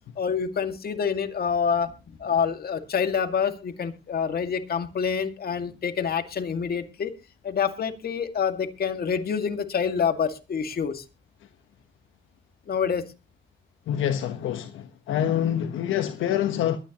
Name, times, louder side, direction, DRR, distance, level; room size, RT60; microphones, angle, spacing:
voice 1, 0.2-7.1 7.4-11.0 12.7-13.0, left 6 dB, 50° left, 2.1 m, -27 dB
voice 2, 13.9-16.8, left 10 dB, 80° left, 1.2 m, -26 dB
22.5 x 9.8 x 3.0 m
cardioid pair, 90°, 20 cm